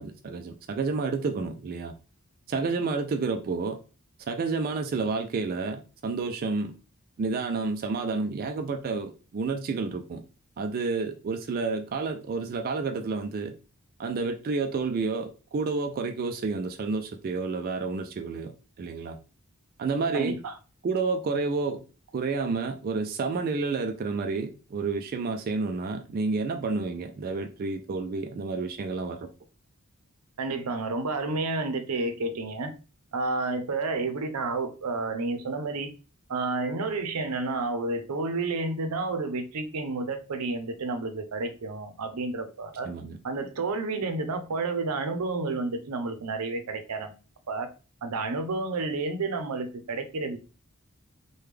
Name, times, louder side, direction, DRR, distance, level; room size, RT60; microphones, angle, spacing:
voice 1, 0.0-1.9 2.5-3.8 4.3-6.7 7.2-10.2 10.6-13.5 14.0-18.5 18.8-19.2 19.8-20.4 20.8-21.8 22.1-29.3 42.8-43.2, right 4 dB, 40° right, 5 dB, 0.3 m, -30 dB
voice 2, 20.1-20.5 30.4-32.7 33.1-35.9 36.3-42.9 43.2-47.1 47.5-47.7 48.0-50.4, right 3 dB, 85° right, 8 dB, 0.6 m, -30 dB
3.4 x 2.2 x 3.2 m, 0.34 s
head